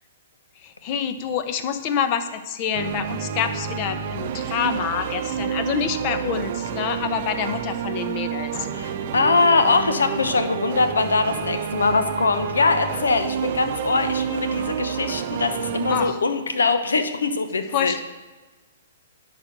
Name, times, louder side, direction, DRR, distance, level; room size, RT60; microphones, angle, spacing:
voice 1, 0.6-8.7 15.9-16.2 17.7-18.0, left 8 dB, 40° left, 9 dB, 0.9 m, -27 dB
sound 1, 2.7-16.1, right 8 dB, 50° right, 0.7 m, -29 dB
voice 2, 8.7-18.0, left 4 dB, 85° left, 8 dB, 1.0 m, -22 dB
11.0 x 4.3 x 6.8 m, 1.3 s
hypercardioid pair, 125°, 0 cm